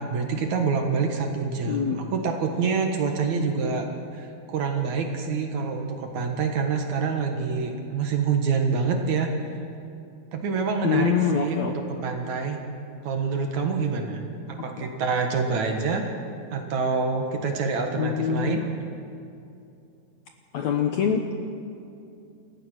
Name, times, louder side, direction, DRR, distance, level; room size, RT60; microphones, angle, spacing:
voice 1, 0.0-3.9 4.1-9.3 10.3-11.7 12.0-12.6 13.0-14.2 14.5-16.1 16.5-18.6, right 5 dB, 60° right, 3 dB, 2.5 m, -26 dB
voice 2, 1.7-2.0 3.6-3.8 10.8-12.0 18.0-18.7 20.5-21.5, left 7 dB, 70° left, 4 dB, 1.8 m, -25 dB
28.5 x 14.5 x 6.2 m, 2.6 s
omnidirectional pair, 4.2 m